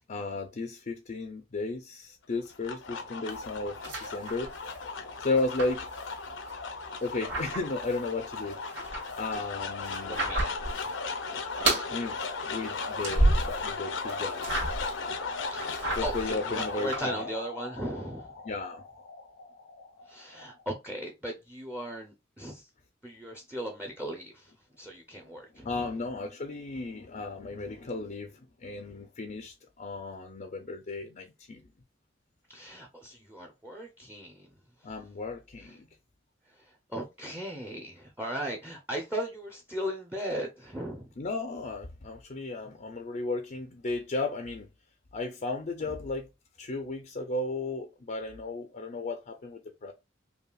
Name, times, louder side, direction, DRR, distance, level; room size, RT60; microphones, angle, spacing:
voice 1, 0.1-4.5 5.2-5.9 7.0-8.8 9.2-10.2 11.9-12.2 12.5-14.7 15.9-17.2 18.5-18.8 25.5-31.6 34.8-35.9 41.2-44.7 45.1-46.3 46.6-49.9, left 3 dB, 45° left, 0.5 m, -34 dB
sound 1, 2.3-20.6, left 4 dB, 80° left, 0.8 m, -37 dB
sound 2, 3.3-4.8 5.1-6.5 6.9-8.0 8.3-10.9 11.1-11.9 12.3-13.7 14.0-15.0 15.4-17.0, right 2 dB, 65° right, 2.1 m, -31 dB
voice 2, 10.0-10.5 15.5-18.3 20.1-22.7 23.0-25.9 32.5-34.5 34.8-34.9 35.6-35.7 36.5-41.1, equal, 10° right, 0.7 m, -38 dB
5.4 x 2.4 x 2.3 m
head